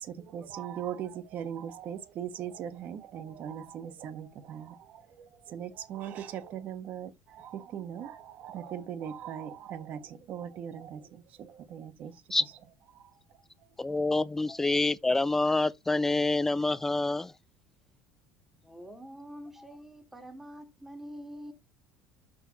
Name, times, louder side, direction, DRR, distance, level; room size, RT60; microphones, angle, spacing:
voice 1, 0.0-12.1 12.9-13.1, right 9 dB, 50° right, 1.3 m, -40 dB
voice 2, 13.8-17.3, left 2 dB, 10° left, 0.5 m, -27 dB
voice 3, 18.6-21.5, equal, 5° right, 1.8 m, -45 dB
6.4 x 5.7 x 4.1 m
supercardioid pair, 120°, 4 cm